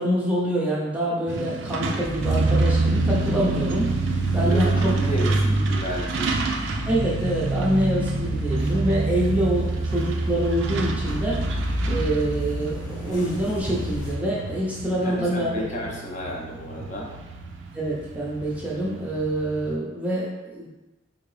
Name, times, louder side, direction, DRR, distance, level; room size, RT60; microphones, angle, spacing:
voice 1, 0.0-3.9 4.3-4.9 6.9-11.4 11.9-15.9 17.7-20.7, right 1 dB, 5° right, -6 dB, 0.5 m, -26 dB
Truck, 1.3-19.7, right 3 dB, 70° right, 0.4 m, -27 dB
sound 1, 2.0-14.2, left 1 dB, 80° left, 0.8 m, -33 dB
voice 2, 4.4-6.4 15.0-17.1, equal, 40° left, -2 dB, 0.6 m, -32 dB
3.6 x 2.6 x 3.2 m, 1.1 s
head